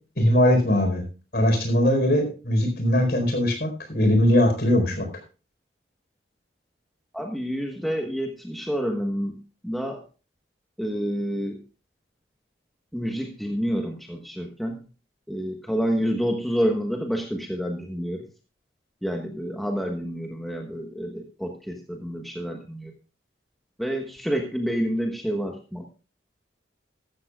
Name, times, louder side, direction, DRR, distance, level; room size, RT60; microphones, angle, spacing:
voice 1, 0.2-1.0 1.3-5.1, left 1 dB, 55° left, 5 dB, 4.4 m, -20 dB
voice 2, 7.1-9.4 9.6-10.0 10.8-11.6 12.9-14.8 15.3-18.2 19.0-22.9 23.8-25.9, equal, ahead, 2 dB, 1.2 m, -28 dB
14.5 x 13.5 x 2.4 m, 0.33 s
head